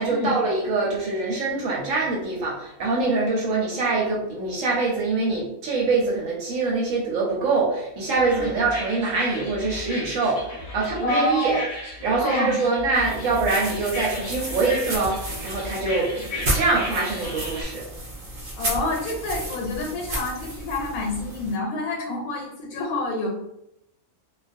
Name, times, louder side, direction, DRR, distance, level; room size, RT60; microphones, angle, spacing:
voice 1, 0.0-11.6 12.0-17.9, right 3 dB, 70° right, -3 dB, 0.9 m, -24 dB
sound 1, 8.1-17.6, left 2 dB, 40° left, 0.5 m, -36 dB
voice 2, 11.0-11.6 12.2-12.5 18.6-23.3, left 2 dB, 85° left, -1 dB, 1.1 m, -27 dB
sound 2, 12.9-21.5, right 1 dB, 50° right, 0.6 m, -33 dB
2.3 x 2.3 x 2.5 m, 0.83 s
omnidirectional pair, 1.6 m